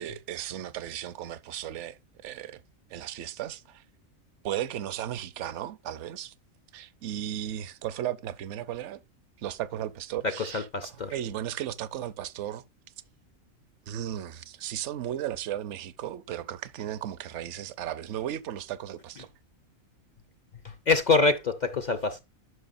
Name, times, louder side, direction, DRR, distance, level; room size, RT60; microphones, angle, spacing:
voice 1, 0.0-2.6 2.9-3.8 4.4-6.3 6.7-9.0 9.4-12.6 13.9-19.3, right 11 dB, 65° right, 0.9 m, -35 dB
voice 2, 10.4-11.1 20.9-22.2, left 4 dB, 50° left, 0.5 m, -25 dB
11.0 x 5.8 x 2.5 m
omnidirectional pair, 1.4 m